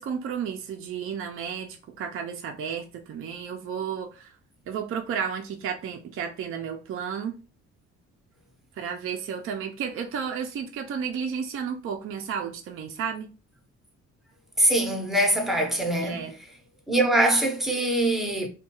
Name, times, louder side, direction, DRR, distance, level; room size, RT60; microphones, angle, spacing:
voice 1, 0.0-4.3 4.7-7.4 8.8-13.3 16.0-16.3, right 7 dB, 45° right, 0.4 m, -32 dB
voice 2, 14.6-16.3 16.9-18.5, right 1 dB, ahead, 0.6 m, -23 dB
2.3 x 2.2 x 2.9 m
cardioid pair, 90°, 30 cm